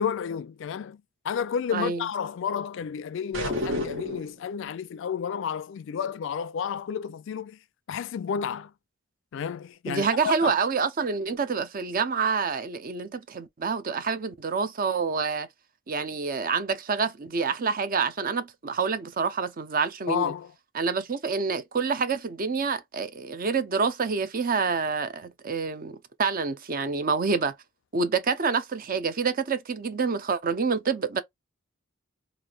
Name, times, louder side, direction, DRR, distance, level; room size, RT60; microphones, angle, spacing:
voice 1, 0.0-7.6 7.9-8.7 9.3-10.6 20.1-20.5, left 7 dB, 65° left, 0.3 m, -31 dB
voice 2, 1.7-2.1 9.9-15.5 15.9-20.3 20.7-27.5 27.9-31.2, right 5 dB, 45° right, 0.6 m, -27 dB
sound 1, 3.3-4.4, equal, 65° right, 1.2 m, -30 dB
3.2 x 2.5 x 2.4 m
head